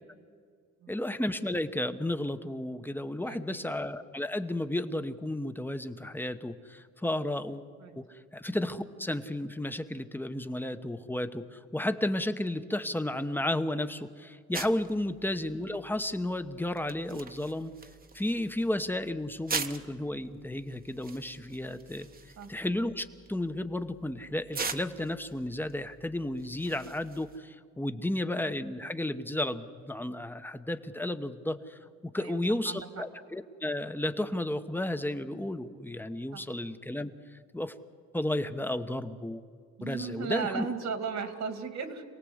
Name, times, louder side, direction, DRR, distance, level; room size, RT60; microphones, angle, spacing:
voice 1, 0.9-7.7 8.0-17.7 18.1-22.1 22.5-37.1 37.5-37.7 38.1-39.4 39.8-40.7, left 1 dB, 5° left, 9 dB, 1.1 m, -33 dB
voice 2, 3.3-3.7 7.8-8.0 22.4-22.5 27.9-28.1 32.2-33.0 36.3-36.4 39.8-42.0, right 5 dB, 65° right, 7 dB, 2.5 m, -36 dB
sound 1, 14.5-27.4, right 4 dB, 30° right, 1.2 m, -43 dB
27.0 x 18.5 x 8.0 m, 2.1 s
cardioid pair, 90°, 30 cm